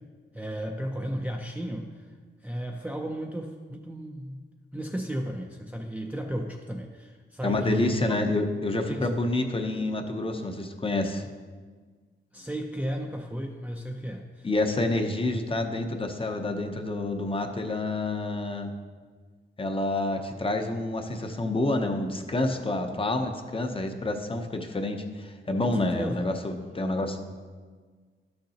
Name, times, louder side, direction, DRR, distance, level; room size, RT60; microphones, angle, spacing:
voice 1, 0.3-2.1 2.4-4.4 4.7-8.2 8.9-9.1 12.3-14.5 25.6-26.2, equal, 5° right, 0 dB, 0.5 m, -34 dB
voice 2, 7.4-11.2 14.4-18.7 19.6-27.2, left 2 dB, 25° left, 5 dB, 0.7 m, -28 dB
12.0 x 6.5 x 2.8 m, 1.5 s
wide cardioid pair, 115°, 21 cm